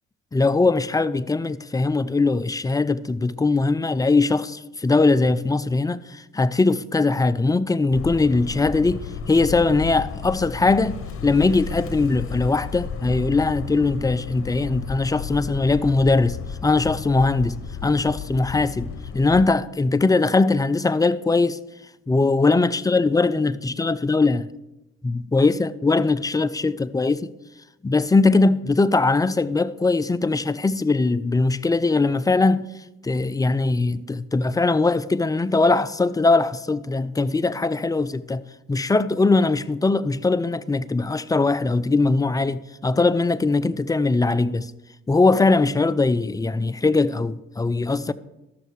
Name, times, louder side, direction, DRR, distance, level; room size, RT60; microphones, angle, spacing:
voice 1, 0.3-16.4 16.6-17.6 17.8-21.6 22.1-24.5 25.0-27.3 27.8-32.7 33.0-38.4 38.7-44.7 45.1-48.1, left 3 dB, 15° left, 0.3 m, -21 dB
sound 1, 7.9-19.5, left 6 dB, 45° left, 1.1 m, -33 dB
12.5 x 6.4 x 4.7 m
cardioid pair, 90°, 30 cm